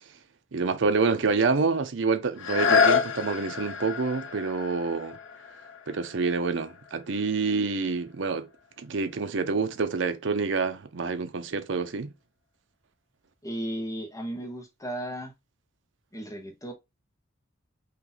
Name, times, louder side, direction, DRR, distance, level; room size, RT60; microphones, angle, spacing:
voice 1, 0.5-5.2 5.9-8.5 8.8-12.1, right 4 dB, 70° right, 0.6 m, -27 dB
sound 1, 2.3-8.0 8.6-8.7, left 6 dB, 80° left, 0.8 m, -28 dB
voice 2, 13.4-15.3 16.1-16.7, right 1 dB, 15° left, 1.2 m, -35 dB
4.2 x 2.9 x 3.9 m
head